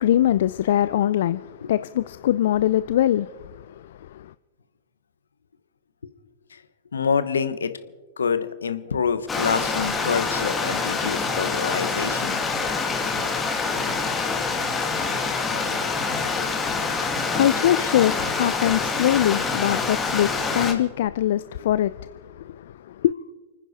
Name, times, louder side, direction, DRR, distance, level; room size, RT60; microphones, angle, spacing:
voice 1, 0.0-4.3 16.1-23.1, left 12 dB, 65° left, 0.4 m, -23 dB
voice 2, 6.9-7.7 8.2-12.4, left 6 dB, 80° left, 1.0 m, -26 dB
Stream, 9.3-20.7, left 4 dB, 20° left, 2.2 m, -26 dB
29.5 x 10.0 x 4.1 m
hypercardioid pair, 100°, 0 cm